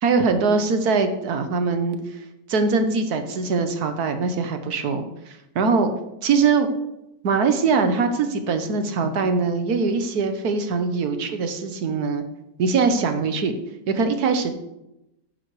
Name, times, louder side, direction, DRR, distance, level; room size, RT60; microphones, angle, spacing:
voice 1, 0.0-5.9 6.2-6.7 7.2-12.2 12.6-13.6 13.9-14.7, right 4 dB, 65° right, 7 dB, 1.4 m, -22 dB
10.5 x 9.8 x 3.2 m, 0.89 s
omnidirectional pair, 1.9 m